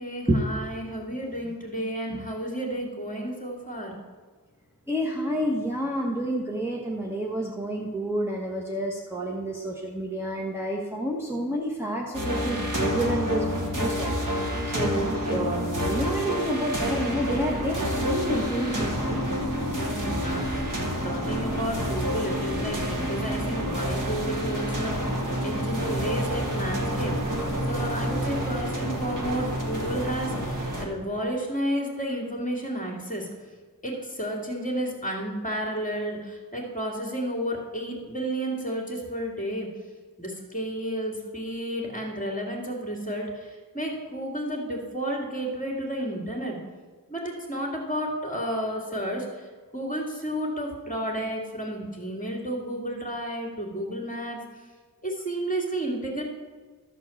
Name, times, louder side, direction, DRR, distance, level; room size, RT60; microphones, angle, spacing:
voice 1, 0.0-4.0 19.9-20.7 21.0-25.1 25.4-27.2 27.7-33.3 33.8-39.7 40.2-46.6 47.1-49.5 49.7-54.4 55.0-56.2, right 1 dB, 20° left, 0 dB, 2.5 m, -32 dB
voice 2, 4.9-19.2, right 1 dB, 5° right, -3 dB, 1.2 m, -29 dB
sound 1, 12.1-30.9, equal, 60° right, 1.7 m, -28 dB
13.0 x 4.6 x 7.1 m, 1.5 s
wide cardioid pair, 60°, 36 cm